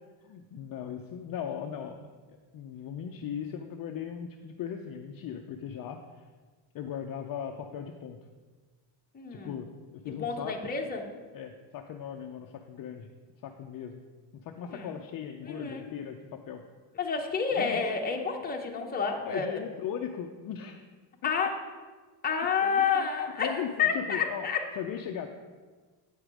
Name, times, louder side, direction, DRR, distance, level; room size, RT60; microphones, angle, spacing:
voice 1, 0.2-2.0 2.3-6.2 6.7-8.2 9.3-10.6 11.3-13.1 13.4-14.0 14.4-16.6 17.6-17.8 19.2-20.8 21.2-21.3 22.6-23.1 23.4-24.5 24.8-25.3, left 8 dB, 45° left, 4 dB, 0.5 m, -38 dB
voice 2, 9.1-9.6 10.2-11.1 14.7-14.9 15.4-15.8 17.0-19.6 21.2-21.5 22.2-24.6, left 6 dB, 20° left, 1 dB, 0.9 m, -29 dB
8.9 x 5.0 x 6.1 m, 1.4 s
cardioid pair, 160°, 48 cm